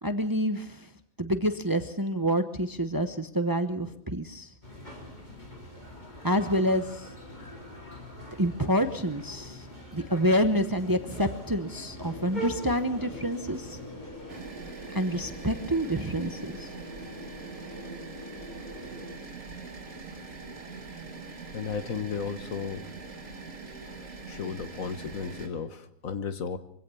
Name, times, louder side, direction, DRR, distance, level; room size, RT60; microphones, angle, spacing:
voice 1, 0.0-0.9 1.2-4.5 6.2-7.1 8.4-9.6 9.9-13.8 14.9-16.7, equal, 20° right, 9 dB, 0.8 m, -27 dB
sound 1, 4.6-14.4, equal, 30° left, 3.7 m, -43 dB
sound 2, 12.0-19.2, left 1 dB, 15° left, 4.3 m, -44 dB
sound 3, 14.3-25.5, right 3 dB, 75° right, 3.5 m, -42 dB
voice 2, 21.5-22.8 24.3-26.6, left 6 dB, 75° left, 10 dB, 1.7 m, -34 dB
23.5 x 16.5 x 7.0 m, 0.71 s
omnidirectional pair, 1.4 m